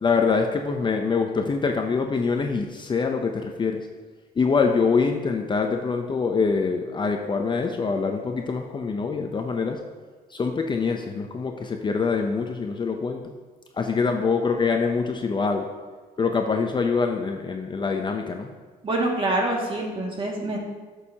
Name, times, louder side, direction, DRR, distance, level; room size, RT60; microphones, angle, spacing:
voice 1, 0.0-3.9 4.4-9.8 10.3-13.3 13.7-15.7 16.2-18.5, left 5 dB, 30° left, 4 dB, 0.7 m, -24 dB
voice 2, 18.8-20.6, right 2 dB, 30° right, -1 dB, 2.1 m, -25 dB
13.0 x 6.4 x 2.9 m, 1.4 s
cardioid pair, 110°, 17 cm